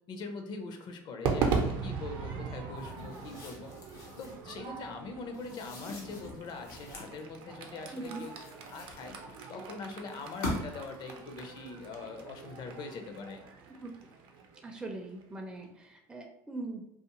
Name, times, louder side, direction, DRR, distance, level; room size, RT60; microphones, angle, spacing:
voice 1, 0.1-3.7 4.2-8.3 8.7-9.2 9.5-13.4, left 4 dB, 50° left, 5 dB, 0.5 m, -42 dB
Crowd / Fireworks, 1.2-15.6, right 5 dB, 65° right, 0.5 m, -38 dB
sound 1, 2.8-4.5 5.3-7.2 7.8-9.4 10.1-10.9, left 1 dB, 90° left, 0.7 m, -42 dB
voice 2, 7.9-8.2 13.8-13.9 14.6-16.9, right 2 dB, 10° right, 2 dB, 0.4 m, -41 dB
2.5 x 2.4 x 2.9 m, 0.84 s
supercardioid pair, 85°, 9 cm